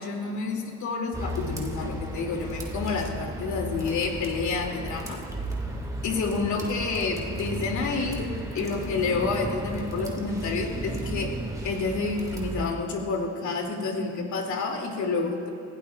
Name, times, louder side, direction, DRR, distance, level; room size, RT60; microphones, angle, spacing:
voice 1, 0.0-5.2 6.0-11.3 11.6-15.5, left 4 dB, 70° left, 1 dB, 2.7 m, -29 dB
sound 1, 1.1-12.7, equal, 10° right, 2.3 m, -34 dB
30.0 x 16.5 x 2.5 m, 2.7 s
cardioid pair, 90°, 30 cm